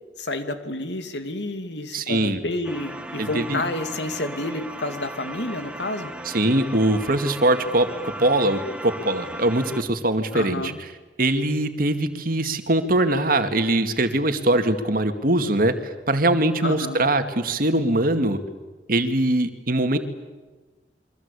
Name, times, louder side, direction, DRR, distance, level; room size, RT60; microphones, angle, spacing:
voice 1, 0.2-6.1 10.3-10.8 16.6-17.1, left 2 dB, 80° left, 8 dB, 2.5 m, -30 dB
voice 2, 1.9-2.4 3.2-3.6 6.3-10.7 11.2-15.7 16.1-18.4 18.9-20.0, right 1 dB, 55° right, 8 dB, 2.3 m, -22 dB
sound 1, 2.6-9.8, right 1 dB, 5° right, 1.9 m, -37 dB
28.5 x 24.0 x 8.5 m, 1.3 s
head